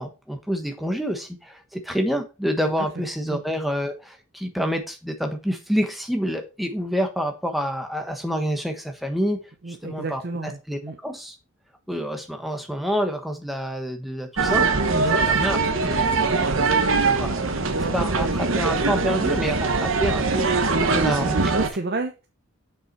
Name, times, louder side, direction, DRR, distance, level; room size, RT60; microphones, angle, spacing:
voice 1, 0.0-9.4 9.7-11.3 11.9-14.7 15.3-17.5 17.8-21.5, equal, ahead, 5 dB, 1.2 m, -28 dB
voice 2, 9.6-11.0 14.9-15.2 21.5-22.3, right 3 dB, 45° right, 5 dB, 0.7 m, -30 dB
sound 1, 14.4-21.7, right 4 dB, 65° right, 1.0 m, -22 dB
7.0 x 5.6 x 4.6 m, 0.29 s
head